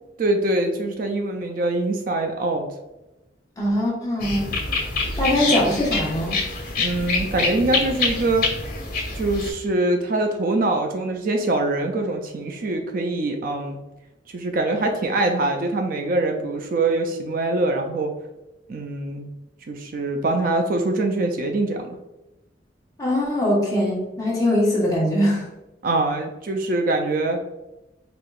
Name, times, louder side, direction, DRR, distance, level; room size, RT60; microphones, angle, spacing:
voice 1, 0.2-2.7 6.8-8.5 9.1-13.8 14.3-18.1 18.7-19.3 19.7-22.0 25.8-27.4, right 2 dB, 50° right, 4 dB, 0.4 m, -23 dB
voice 2, 3.6-4.5 5.2-6.4 23.0-25.5, left 1 dB, 20° left, -5 dB, 1.1 m, -22 dB
sound 1, 4.2-9.5, left 3 dB, 50° left, 1.2 m, -26 dB
4.3 x 2.9 x 2.3 m, 0.99 s
head